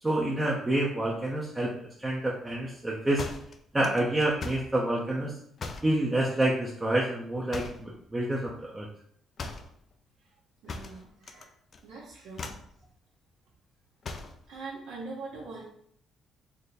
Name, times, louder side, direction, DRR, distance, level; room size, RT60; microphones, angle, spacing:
voice 1, 0.0-3.3 3.7-5.4 5.8-8.9, right 1 dB, 20° right, -3 dB, 0.6 m, -28 dB
sound 1, 3.2-4.7 5.6-6.0 7.5-7.9 9.4-9.7 10.7-11.5 11.7-12.0 12.3-12.7 14.0-14.4, left 3 dB, 50° left, 0.4 m, -39 dB
voice 2, 10.6-11.5 11.8-12.5 14.5-15.6, right 3 dB, 80° right, -6 dB, 0.9 m, -42 dB
3.5 x 2.1 x 4.1 m, 0.67 s
supercardioid pair, 75°, 0 cm